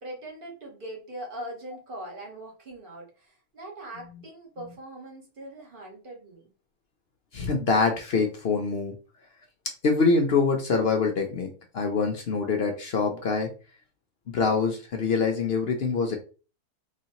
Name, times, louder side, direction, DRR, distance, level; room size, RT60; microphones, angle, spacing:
voice 1, 0.0-6.5, right 1 dB, 35° right, -2 dB, 1.4 m, -41 dB
voice 2, 7.3-8.9 9.8-11.5 11.7-13.5 14.3-16.2, left 4 dB, 60° left, 3 dB, 0.6 m, -24 dB
4.0 x 3.1 x 2.8 m, 0.35 s
omnidirectional pair, 1.7 m